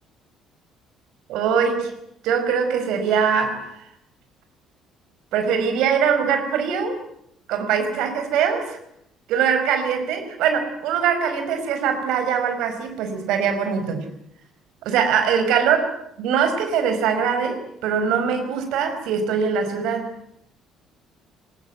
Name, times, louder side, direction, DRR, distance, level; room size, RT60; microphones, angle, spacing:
voice 1, 1.3-1.9 2.2-3.8 5.3-7.0 7.5-8.8 9.3-14.1 14.9-15.9 16.2-20.1, right 7 dB, 75° right, 7 dB, 5.1 m, -22 dB
23.0 x 20.0 x 9.4 m, 0.75 s
cardioid pair, 155°, 0 cm